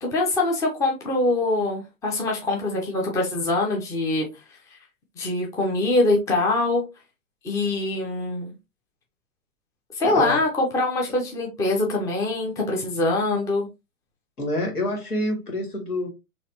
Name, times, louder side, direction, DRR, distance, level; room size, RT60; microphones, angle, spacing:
voice 1, 0.0-4.3 5.2-6.8 7.4-8.5 10.0-13.7, left 2 dB, 5° left, 0.6 m, -23 dB
voice 2, 10.0-10.4 14.4-16.1, left 1 dB, 80° left, 2.0 m, -27 dB
4.1 x 2.8 x 2.7 m
figure-of-eight pair, 110°, 44 cm